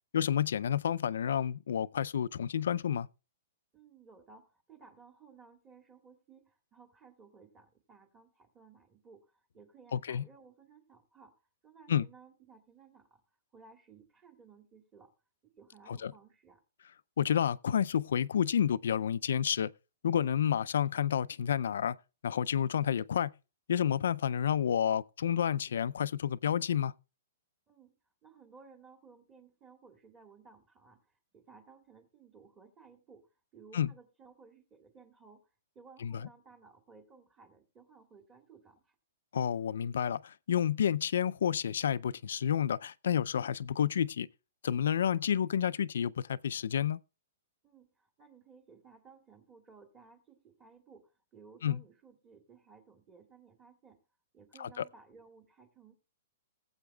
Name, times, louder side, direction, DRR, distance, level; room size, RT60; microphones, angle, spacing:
voice 1, 0.1-3.1 9.9-10.2 11.9-12.1 15.9-16.1 17.2-19.7 20.0-22.0 22.2-23.3 23.7-26.9 33.7-33.9 36.0-36.3 39.3-44.3 44.6-47.0 51.6-51.8 54.6-54.8, left 9 dB, 70° left, 0.4 m, -30 dB
voice 2, 3.7-13.2 13.5-15.1 15.4-16.6 27.7-28.0 28.2-38.9 47.6-54.0 54.3-55.9, right 5 dB, 15° right, 1.6 m, -58 dB
19.5 x 8.0 x 2.3 m
hypercardioid pair, 165°, 0 cm